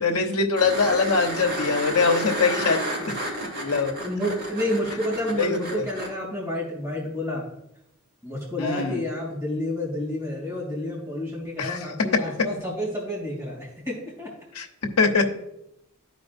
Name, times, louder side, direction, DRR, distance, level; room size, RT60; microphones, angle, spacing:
voice 1, 0.0-2.8 3.5-4.0 5.4-5.6 8.6-9.0 11.6-11.8 14.5-14.7 15.0-15.3, left 4 dB, 90° left, 2 dB, 1.0 m, -22 dB
sound 1, 0.5-6.1 8.8-8.9, right 1 dB, 45° right, 2.4 m, -31 dB
voice 2, 4.0-7.5 8.2-14.3, left 1 dB, 15° right, -6 dB, 2.8 m, -30 dB
13.0 x 4.9 x 2.6 m, 0.81 s
head